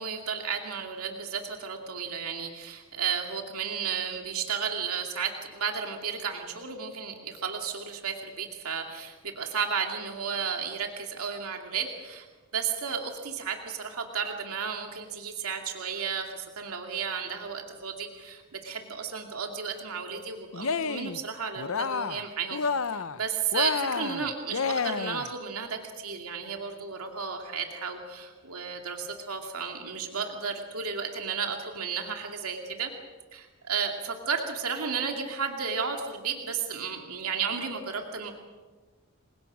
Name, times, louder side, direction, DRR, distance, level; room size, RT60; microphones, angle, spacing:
voice 1, 0.0-12.3 12.5-22.6 22.9-32.9 33.3-38.3, right 6 dB, 80° right, 3 dB, 2.4 m, -33 dB
Cheering, 20.5-21.2 21.6-22.3 22.5-23.2 23.5-25.3, left 5 dB, 65° left, 0.7 m, -30 dB
29.5 x 24.0 x 6.2 m, 1.4 s
head